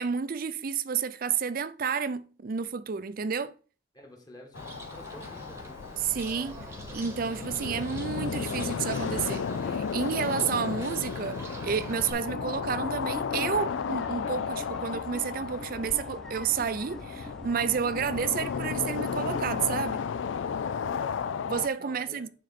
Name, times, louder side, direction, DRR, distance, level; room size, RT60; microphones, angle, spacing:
voice 1, 0.0-3.5 6.0-6.7 6.9-20.0 21.5-22.3, right 6 dB, 50° right, 0.4 m, -30 dB
voice 2, 3.9-5.7 21.8-22.3, equal, 20° left, 1.6 m, -50 dB
sound 1, 4.5-21.7, left 6 dB, 85° left, 0.4 m, -34 dB
Bird, 4.6-12.1, right 1 dB, 15° right, 1.1 m, -43 dB
sound 2, 11.3-19.7, equal, 5° left, 0.6 m, -45 dB
9.3 x 3.9 x 4.2 m
head